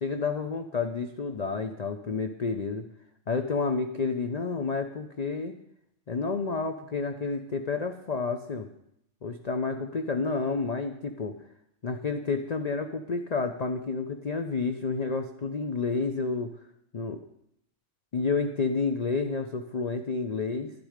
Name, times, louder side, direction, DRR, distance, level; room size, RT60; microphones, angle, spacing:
voice 1, 0.0-2.9 3.3-5.5 6.1-8.7 9.2-11.3 11.8-16.5 16.9-17.2 18.1-20.7, left 4 dB, 45° left, 6 dB, 0.5 m, -30 dB
12.0 x 9.5 x 5.0 m, 0.77 s
omnidirectional pair, 1.4 m